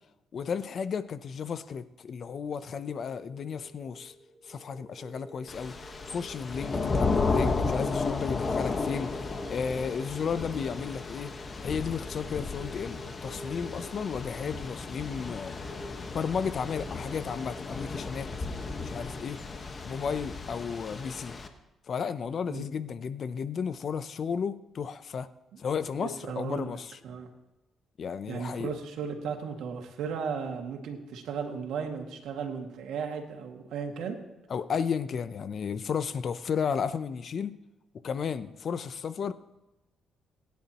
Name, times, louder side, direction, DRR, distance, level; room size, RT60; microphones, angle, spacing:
voice 1, 0.3-4.1 4.4-5.8 6.1-11.3 11.6-15.6 16.1-18.3 18.8-19.4 19.8-21.4 21.9-25.3 25.6-27.0 28.0-28.7 34.5-37.6 38.0-39.3, left 6 dB, 55° left, 0.7 m, -33 dB
sound 1, 2.5-17.9, equal, 25° right, 1.9 m, -50 dB
Thunder / Rain, 5.5-21.5, left 4 dB, 35° left, 1.3 m, -34 dB
voice 2, 26.0-26.8 27.0-27.3 28.3-34.2, right 6 dB, 80° right, 2.1 m, -35 dB
21.5 x 10.5 x 3.0 m
cardioid pair, 90°, 0 cm